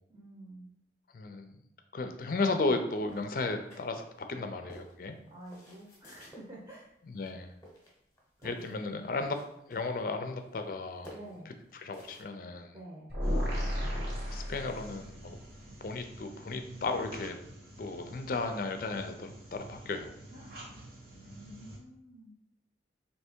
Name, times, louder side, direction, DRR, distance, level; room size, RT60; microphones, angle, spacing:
voice 1, 0.1-0.7 5.3-6.9 8.4-9.2 11.1-11.6 12.7-13.1 20.3-20.5 21.1-22.3, right 1 dB, 25° right, -5 dB, 0.8 m, -49 dB
voice 2, 1.1-1.6 1.9-5.2 7.1-7.5 8.4-9.4 9.7-11.1 11.7-12.7 14.3-15.4 15.8-17.4 17.8-20.1, left 3 dB, 50° left, 7 dB, 0.4 m, -34 dB
sound 1, 3.0-4.3 4.7-6.5 7.1-7.4 7.6-8.8 9.1-10.0 10.4-12.2, equal, 15° left, 0.9 m, -52 dB
sound 2, 13.1-15.2, equal, 75° right, 1.7 m, -32 dB
sound 3, 13.2-21.8, right 1 dB, 50° right, 1.1 m, -49 dB
3.3 x 2.8 x 4.4 m, 0.77 s
head